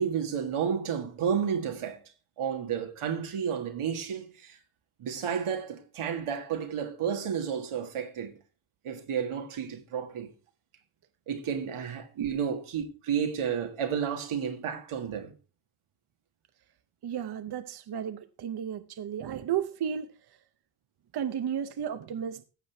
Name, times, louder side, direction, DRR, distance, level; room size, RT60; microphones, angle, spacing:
voice 1, 0.0-2.0 2.4-4.6 5.0-8.4 8.8-10.3 11.3-15.3, right 7 dB, 90° right, 1.9 m, -31 dB
voice 2, 17.0-20.1 21.1-22.4, right 9 dB, 50° right, 0.7 m, -33 dB
15.0 x 7.5 x 3.4 m
wide cardioid pair, 140°, 49 cm